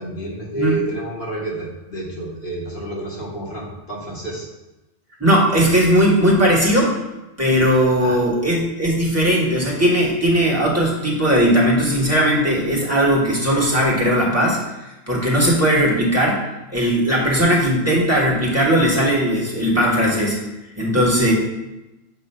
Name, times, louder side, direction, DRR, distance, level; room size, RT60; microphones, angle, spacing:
voice 1, 0.0-4.5 8.0-8.2, right 1 dB, 50° left, -5 dB, 1.7 m, -29 dB
voice 2, 5.2-6.9 7.4-14.6 15.1-16.4 16.7-20.4 20.8-21.3, equal, 15° right, -5 dB, 1.3 m, -18 dB
7.3 x 2.6 x 5.4 m, 1.0 s
omnidirectional pair, 1.1 m